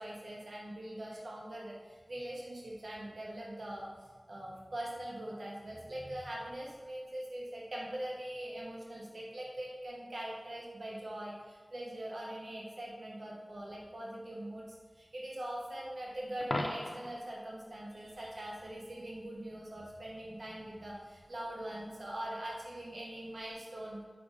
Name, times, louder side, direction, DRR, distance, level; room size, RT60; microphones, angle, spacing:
voice 1, 0.0-24.0, right 1 dB, 75° right, -3 dB, 1.1 m, -42 dB
Coin (dropping), 16.4-17.3 23.3-23.5, left 1 dB, 50° left, 0.6 m, -37 dB
5.1 x 4.8 x 4.8 m, 1.4 s
wide cardioid pair, 50°, 0 cm